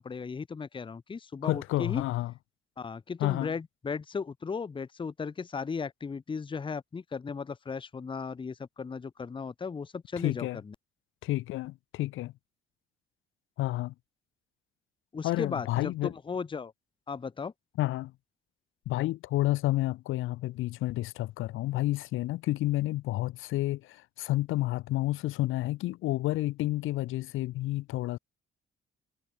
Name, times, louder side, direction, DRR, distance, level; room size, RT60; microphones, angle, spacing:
voice 1, 0.0-2.0 2.8-10.7 15.1-16.7 17.1-17.5, left 5 dB, 25° left, 0.7 m, -36 dB
voice 2, 1.4-2.3 3.2-3.5 10.2-10.6 11.2-12.3 13.6-13.9 15.2-16.1 17.8-18.1 18.9-28.2, left 17 dB, 90° left, 1.0 m, -30 dB
cardioid pair, 90°, 20 cm